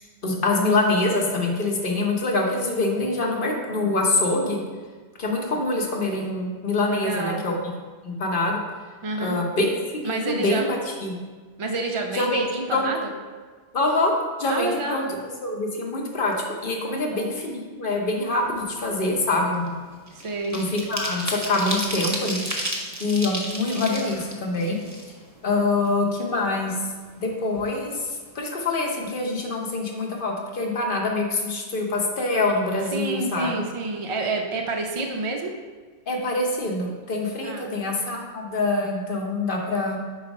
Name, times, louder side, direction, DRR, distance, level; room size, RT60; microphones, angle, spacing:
voice 1, 0.2-4.6 5.2-7.5 8.0-8.6 9.2-11.2 12.1-12.4 12.7-12.9 13.7-14.1 14.4-15.1 15.4-19.7 20.5-22.4 23.0-24.8 25.4-26.7 27.2-28.1 28.3-33.6 36.1-40.0, left 2 dB, 55° left, 1 dB, 1.0 m, -25 dB
voice 2, 6.9-7.4 9.0-9.4 10.0-10.7 11.6-13.1 14.5-15.2 16.8-17.3 20.1-20.6 32.9-35.5 37.4-37.7, right 3 dB, 55° right, 2 dB, 0.3 m, -29 dB
sound 1, 18.5-18.7 19.0-25.5 25.8-25.9 26.3-27.2 27.5-27.7 28.0-28.3, equal, 20° right, 0.7 m, -32 dB
4.8 x 4.0 x 5.2 m, 1.4 s
omnidirectional pair, 1.1 m